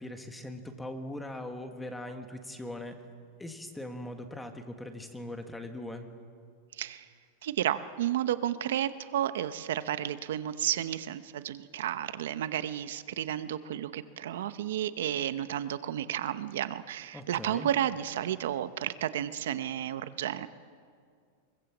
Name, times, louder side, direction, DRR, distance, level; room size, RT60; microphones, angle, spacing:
voice 1, 0.0-3.0 3.4-6.1 17.1-17.7, left 1 dB, 5° left, 5 dB, 1.6 m, -40 dB
voice 2, 7.4-20.5, right 11 dB, 75° right, 12 dB, 0.9 m, -32 dB
24.0 x 23.0 x 7.4 m, 2.2 s
supercardioid pair, 165°, 0 cm